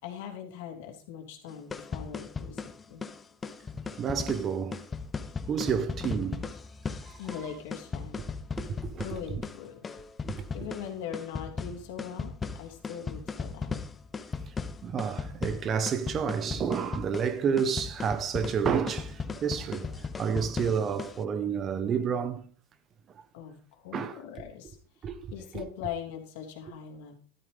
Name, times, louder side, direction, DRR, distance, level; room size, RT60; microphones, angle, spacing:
voice 1, 0.0-3.0 7.2-8.3 9.0-9.9 10.5-13.9 23.3-24.8 25.3-27.2, left 8 dB, 70° left, 3.0 m, -41 dB
sound 1, 1.5-21.2, left 5 dB, 20° left, 0.8 m, -37 dB
voice 2, 4.0-4.8 5.5-6.5 7.0-7.2 8.6-9.1 10.2-10.7 14.5-14.6 14.8-22.5 23.2-23.3 23.9-24.2 25.0-25.6, right 7 dB, 30° right, 1.0 m, -30 dB
12.5 x 12.5 x 3.4 m
supercardioid pair, 130°, 0 cm